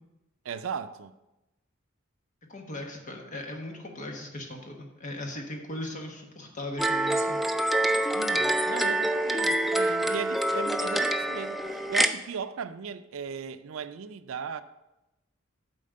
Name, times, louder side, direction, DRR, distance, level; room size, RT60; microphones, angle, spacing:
voice 1, 0.4-1.1 8.1-14.6, right 6 dB, 85° right, 0.4 m, -37 dB
voice 2, 2.5-7.4, left 1 dB, 40° left, 1.3 m, -38 dB
sound 1, 6.8-12.1, right 1 dB, ahead, 0.3 m, -26 dB
8.7 x 4.3 x 6.5 m
head